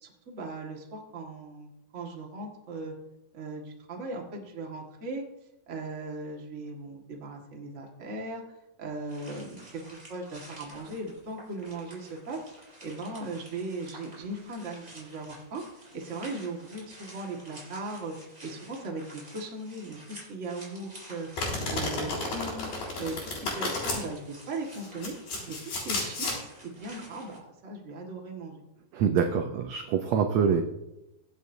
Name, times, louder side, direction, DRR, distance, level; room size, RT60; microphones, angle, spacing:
voice 1, 0.0-2.9 3.3-5.2 5.7-8.4 8.8-12.4 12.8-15.6 15.9-18.2 18.4-21.3 21.7-22.7 22.9-25.1 25.5-28.6, right 2 dB, 35° right, 0 dB, 1.3 m, -38 dB
sound 1, 9.1-27.4, right 1 dB, 10° right, 4.8 m, -50 dB
Domestic sounds home sounds, 21.4-24.0 24.7-26.4, left 3 dB, 90° left, 5.4 m, -32 dB
voice 2, 28.9-30.6, right 7 dB, 75° right, 5 dB, 1.6 m, -25 dB
22.5 x 7.9 x 2.7 m, 0.93 s
omnidirectional pair, 3.8 m